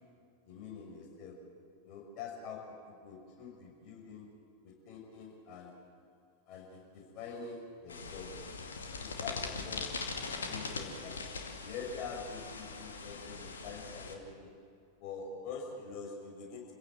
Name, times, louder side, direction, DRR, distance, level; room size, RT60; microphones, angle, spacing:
voice 1, 0.5-1.4 1.8-2.6 2.8-4.3 4.6-5.7 6.5-8.3 9.0-9.9 10.4-11.2 11.6-14.5 15.0-16.6, left 5 dB, 40° left, 0 dB, 6.0 m, -45 dB
sound 1, 7.9-14.1, left 4 dB, 70° left, 2.3 m, -41 dB
27.5 x 16.5 x 7.9 m, 2.4 s
figure-of-eight pair, 90°, 0 cm